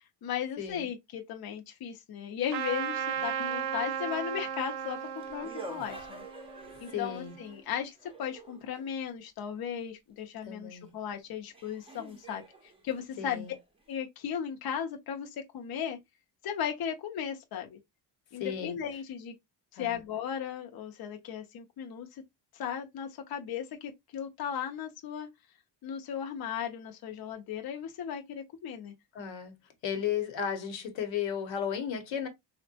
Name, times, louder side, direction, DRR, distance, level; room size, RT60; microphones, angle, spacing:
voice 1, 0.0-6.2 6.8-12.4 12.8-13.4 13.9-16.0 16.4-17.8 18.3-19.3 19.7-22.1 22.5-25.3 25.8-28.9, left 8 dB, 55° left, 0.7 m, -36 dB
Trumpet, 2.5-7.6, right 8 dB, 65° right, 0.6 m, -36 dB
sound 1, 4.7-9.0 10.9-11.0 11.5-14.0, right 2 dB, 15° right, 0.6 m, -49 dB
voice 2, 6.9-7.4 10.4-10.9 13.2-13.5 18.4-18.8 19.8-20.0 29.1-29.5 29.8-32.3, left 8 dB, 85° left, 1.0 m, -34 dB
3.4 x 2.2 x 2.6 m
cardioid pair, 115°, 44 cm